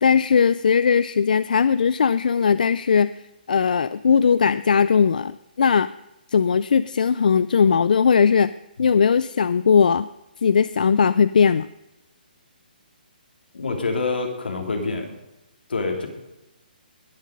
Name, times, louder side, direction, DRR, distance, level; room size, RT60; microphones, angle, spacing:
voice 1, 0.0-3.1 3.5-5.9 6.3-8.5 8.8-10.1 10.4-11.7, left 6 dB, 55° left, 15 dB, 0.4 m, -18 dB
voice 2, 13.5-15.1 15.7-16.1, left 3 dB, 80° left, 3 dB, 3.2 m, -26 dB
20.0 x 7.5 x 5.2 m, 0.92 s
hypercardioid pair, 175°, 5 cm